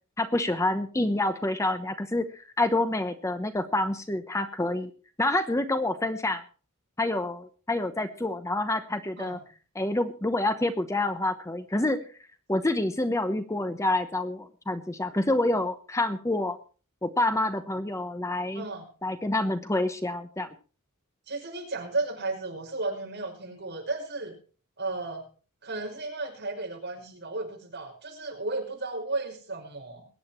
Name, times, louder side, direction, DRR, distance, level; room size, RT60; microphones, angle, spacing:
voice 1, 0.2-4.9 5.2-6.4 7.0-9.4 9.7-12.0 12.5-16.6 17.0-18.6 19.0-20.5, left 2 dB, 15° left, 9 dB, 0.9 m, -27 dB
voice 2, 18.5-18.9 21.3-24.4 24.8-25.3 25.6-30.1, right 3 dB, 55° right, 0 dB, 5.9 m, -34 dB
22.0 x 9.3 x 4.4 m, 0.39 s
head